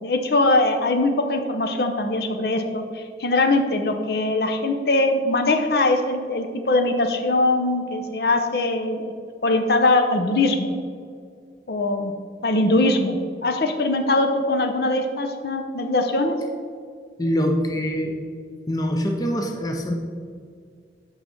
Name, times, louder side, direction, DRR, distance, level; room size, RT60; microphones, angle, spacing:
voice 1, 0.0-9.1 9.4-10.7 11.7-12.1 12.4-16.4, left 2 dB, 60° left, 5 dB, 0.7 m, -21 dB
voice 2, 17.2-18.2 18.7-19.9, equal, 20° left, 3 dB, 0.5 m, -24 dB
7.8 x 5.6 x 4.5 m, 2.1 s
head